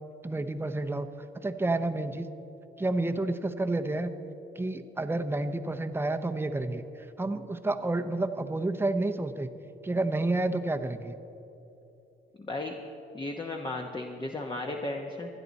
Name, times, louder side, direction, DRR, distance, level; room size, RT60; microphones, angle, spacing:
voice 1, 0.2-1.1 1.4-2.3 2.8-4.1 4.6-6.8 7.2-9.5 9.8-11.2, right 2 dB, 10° right, 7 dB, 0.8 m, -30 dB
voice 2, 12.4-12.8 13.1-15.3, left 2 dB, 25° left, 2 dB, 1.1 m, -35 dB
25.0 x 10.0 x 4.1 m, 3.0 s
cardioid pair, 90°, 20 cm